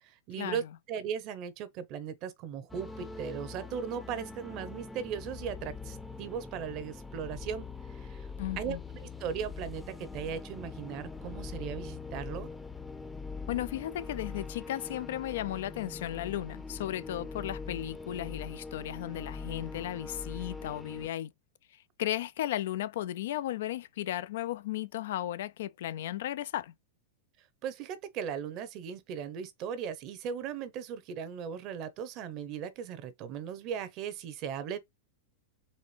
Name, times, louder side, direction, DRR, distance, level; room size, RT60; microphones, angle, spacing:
voice 1, 0.0-7.7 7.9-8.3 8.6-8.8 9.2-12.5 27.6-34.8, right 8 dB, 45° right, 0.8 m, -38 dB
sound 1, 2.7-21.1, left 4 dB, 5° left, 0.6 m, -43 dB
voice 2, 8.4-8.8 13.5-21.3 22.0-26.7, left 13 dB, 70° left, 0.3 m, -35 dB
4.2 x 3.0 x 3.3 m
hypercardioid pair, 130°, 0 cm